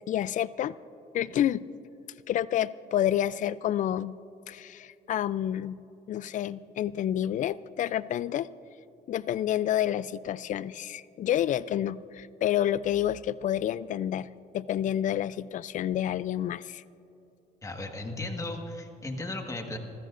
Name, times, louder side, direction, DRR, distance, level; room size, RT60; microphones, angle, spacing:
voice 1, 0.1-0.7 1.1-1.6 2.3-4.1 4.5-5.8 6.1-8.5 9.1-14.3 14.5-16.8, left 11 dB, 50° left, 18 dB, 0.4 m, -29 dB
voice 2, 17.6-19.8, left 2 dB, 20° left, 3 dB, 1.6 m, -36 dB
28.0 x 14.5 x 2.5 m, 2.9 s
cardioid pair, 110°, 17 cm